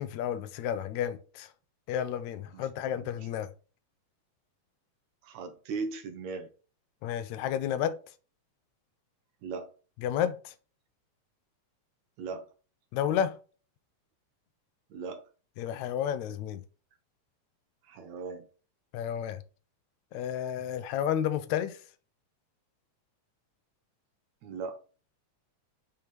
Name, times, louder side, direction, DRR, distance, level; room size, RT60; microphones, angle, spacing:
voice 1, 0.0-1.5 1.9-3.5 7.0-8.0 10.0-10.5 12.9-13.3 15.6-16.6 18.9-19.4 20.1-21.8, left 9 dB, 80° left, 1.8 m, -31 dB
voice 2, 2.5-3.3 5.2-6.5 9.4-9.7 12.2-12.5 14.9-15.3 17.8-18.5 24.4-24.8, right 4 dB, 75° right, 2.0 m, -38 dB
6.4 x 3.6 x 4.2 m
omnidirectional pair, 3.5 m